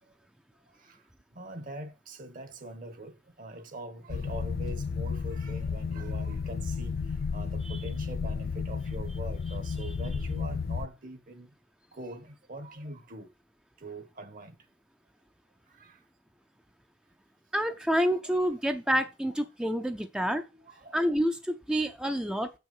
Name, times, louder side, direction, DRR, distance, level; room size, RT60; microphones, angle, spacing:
voice 1, 1.3-11.5 11.9-13.3 13.8-14.5 15.7-16.0 18.2-18.4 20.5-21.0, right 1 dB, 50° right, 1.3 m, -43 dB
sound 1, 4.1-10.9, left 5 dB, 55° left, 0.4 m, -33 dB
voice 2, 17.5-20.4 20.9-22.5, equal, 5° right, 0.5 m, -28 dB
7.2 x 6.0 x 5.5 m
head